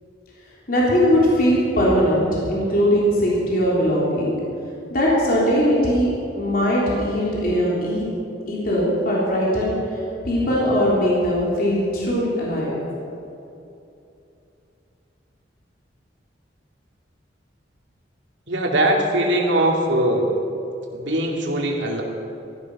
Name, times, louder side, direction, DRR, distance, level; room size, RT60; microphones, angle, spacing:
voice 1, 0.7-4.3 4.9-8.1 8.5-9.9 10.2-12.8, equal, 50° left, -5 dB, 3.5 m, -20 dB
voice 2, 18.5-20.3 20.9-22.0, right 1 dB, 75° right, -1 dB, 2.8 m, -21 dB
17.0 x 14.5 x 5.6 m, 2.8 s
head